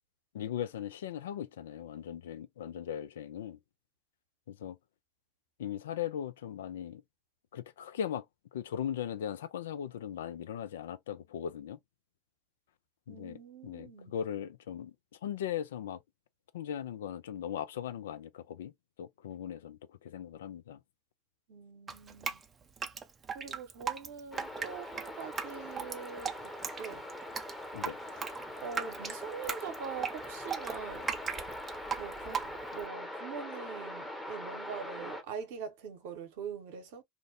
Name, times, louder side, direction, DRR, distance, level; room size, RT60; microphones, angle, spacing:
voice 1, 0.3-3.6 4.5-4.8 5.6-7.0 7.5-8.3 8.5-11.8 13.1-14.9 15.2-16.0 16.5-18.7 19.0-20.8 27.7-28.0, left 9 dB, 75° left, 0.3 m, -38 dB
voice 2, 13.1-14.2 21.5-22.4 23.3-26.5 26.8-27.0 28.6-31.2 32.0-37.0, right 6 dB, 65° right, 0.8 m, -43 dB
Drip, 21.9-32.9, right 6 dB, 30° right, 0.5 m, -38 dB
sound 1, 24.3-35.2, left 1 dB, 5° left, 0.8 m, -42 dB
2.6 x 2.1 x 2.5 m
hypercardioid pair, 80°, 0 cm